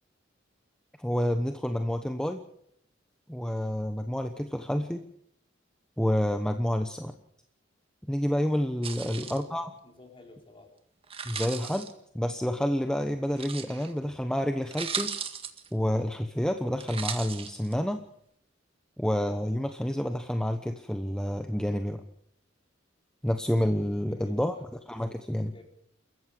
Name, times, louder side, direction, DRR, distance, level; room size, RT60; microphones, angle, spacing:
voice 1, 1.0-2.4 3.3-5.1 6.0-7.1 8.1-9.7 11.2-15.1 15.7-18.0 19.0-22.0 23.2-24.5 24.9-25.5, equal, 5° left, 7 dB, 1.0 m, -29 dB
sound 1, 8.8-9.4 11.0-11.9 13.4-13.9 14.4-14.5 14.7-15.7 16.8-17.7, right 6 dB, 30° right, 1.8 m, -36 dB
voice 2, 9.0-9.5 9.8-10.7 24.1-24.6 25.1-25.6, left 2 dB, 30° left, 2 dB, 4.5 m, -52 dB
29.0 x 14.5 x 6.7 m, 0.71 s
head